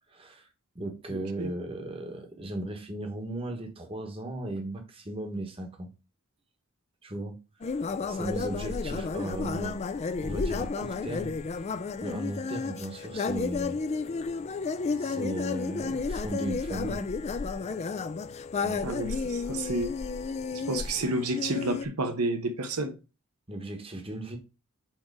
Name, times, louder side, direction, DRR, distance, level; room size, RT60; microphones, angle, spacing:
voice 1, 0.1-0.5 0.7-5.9 7.0-7.4 8.1-9.8 10.2-13.8 15.0-17.1 18.6-18.8 23.5-24.4, right 1 dB, 25° right, 1.1 m, -36 dB
voice 2, 1.1-1.5 18.8-19.9 20.5-22.9, right 2 dB, 85° right, 0.9 m, -30 dB
sound 1, 7.6-21.9, left 4 dB, 30° left, 0.3 m, -32 dB
4.5 x 4.4 x 4.7 m
head